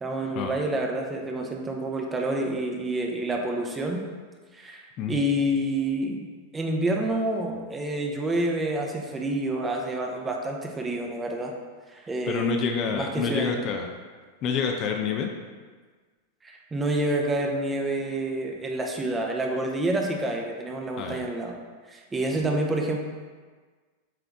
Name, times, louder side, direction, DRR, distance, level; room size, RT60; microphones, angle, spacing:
voice 1, 0.0-4.0 4.5-6.2 6.5-11.5 11.9-13.6 16.4-21.5 21.9-23.0, right 1 dB, 15° right, 1 dB, 0.8 m, -28 dB
voice 2, 12.3-14.0 14.4-15.3 21.0-21.3, left 6 dB, 35° left, 3 dB, 0.6 m, -28 dB
7.7 x 3.5 x 3.5 m, 1.5 s
figure-of-eight pair, 90°, 0 cm